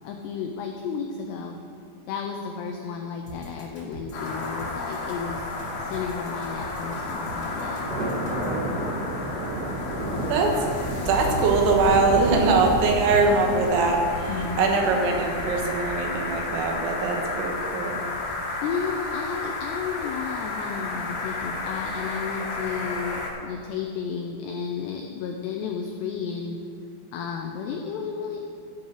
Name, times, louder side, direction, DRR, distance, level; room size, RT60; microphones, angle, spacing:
voice 1, 0.0-1.6 2.1-5.5 5.8-7.9 14.3-14.8 18.5-26.6 27.1-28.4, left 6 dB, 90° left, 3 dB, 2.3 m, -32 dB
sound 1, 3.3-8.6, equal, 30° left, 1.7 m, -41 dB
sound 2, 4.1-23.3, left 3 dB, 65° left, 2.5 m, -33 dB
Thunder, 6.9-16.7, equal, 40° right, 1.4 m, -32 dB
voice 2, 10.3-18.0, right 3 dB, 75° right, 1 dB, 3.5 m, -22 dB
15.0 x 5.5 x 6.5 m, 2.4 s
omnidirectional pair, 5.6 m